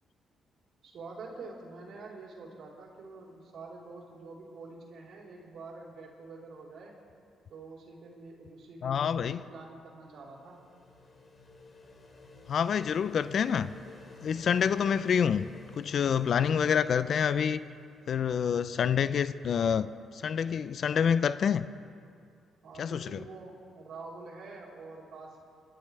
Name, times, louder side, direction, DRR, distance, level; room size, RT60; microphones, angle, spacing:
voice 1, 0.8-7.0 7.5-10.6 22.6-25.4, right 3 dB, 70° right, -4 dB, 3.7 m, -46 dB
voice 2, 8.8-9.4 12.5-13.7 14.2-15.5 15.7-17.6 18.1-21.7 22.8-23.2, left 7 dB, 60° left, 14 dB, 0.5 m, -27 dB
sound 1, 10.0-18.6, left 3 dB, 35° left, 3.0 m, -53 dB
28.5 x 12.0 x 3.3 m, 2.3 s
cardioid pair, 90°, 0 cm